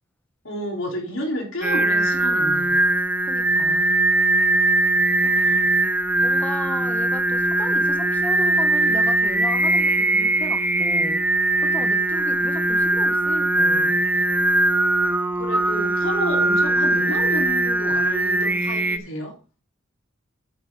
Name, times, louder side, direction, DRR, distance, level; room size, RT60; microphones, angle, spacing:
voice 1, 0.4-2.8 5.4-5.7 15.3-19.3, equal, 75° left, 0 dB, 3.7 m, -31 dB
Singing, 1.6-19.0, right 2 dB, 10° right, 0.5 m, -20 dB
voice 2, 3.3-3.9 5.2-5.5 6.2-11.2 11.6-14.0, left 1 dB, 10° left, 6 dB, 1.3 m, -35 dB
9.6 x 8.1 x 3.8 m, 0.33 s
head